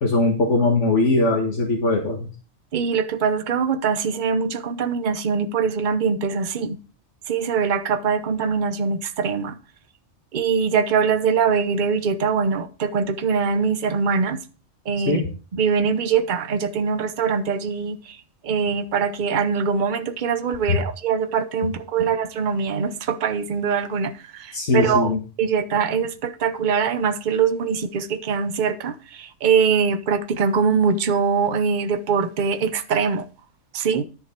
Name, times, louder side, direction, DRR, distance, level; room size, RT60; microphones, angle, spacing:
voice 1, 0.0-2.3 15.1-15.2 20.7-20.8 24.5-25.2, left 3 dB, 80° left, 1.9 m, -20 dB
voice 2, 2.7-6.8 7.3-9.6 10.3-14.4 14.9-15.2 15.5-18.2 18.4-33.3 33.7-34.0, right 6 dB, 45° right, 0.9 m, -23 dB
10.5 x 6.2 x 4.5 m
omnidirectional pair, 1.2 m